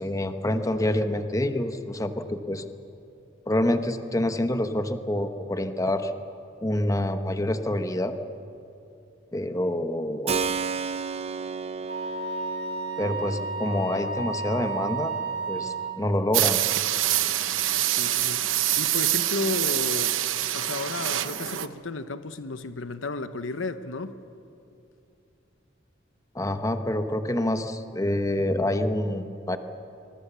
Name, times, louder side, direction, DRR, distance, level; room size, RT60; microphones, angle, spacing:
voice 1, 0.0-2.6 3.5-6.1 6.6-8.1 9.3-10.3 13.0-15.1 15.5-16.6 26.3-29.6, left 1 dB, 15° left, 1.0 m, -27 dB
Keyboard (musical), 10.3-18.9, right 5 dB, 35° right, 0.6 m, -35 dB
Wind instrument woodwind instrument, 11.9-16.1, right 4 dB, 55° right, 2.9 m, -32 dB
sound 1, 16.3-21.7, right 13 dB, 90° right, 0.9 m, -25 dB
voice 2, 17.9-20.2 20.5-24.2, left 3 dB, 85° left, 1.0 m, -33 dB
25.0 x 22.0 x 6.9 m
head